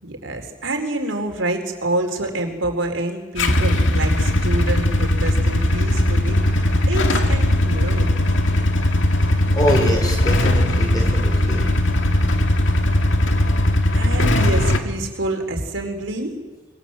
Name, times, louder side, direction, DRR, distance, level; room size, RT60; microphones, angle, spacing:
voice 1, 0.0-6.4 6.9-8.4 13.9-16.3, right 2 dB, 85° right, 4 dB, 4.2 m, -27 dB
Motorcycle / Engine starting / Idling, 3.4-14.8, left 1 dB, 75° left, 2.1 m, -18 dB
voice 2, 9.5-11.7, equal, 20° left, 3 dB, 5.8 m, -24 dB
26.5 x 23.0 x 7.7 m, 1.3 s
head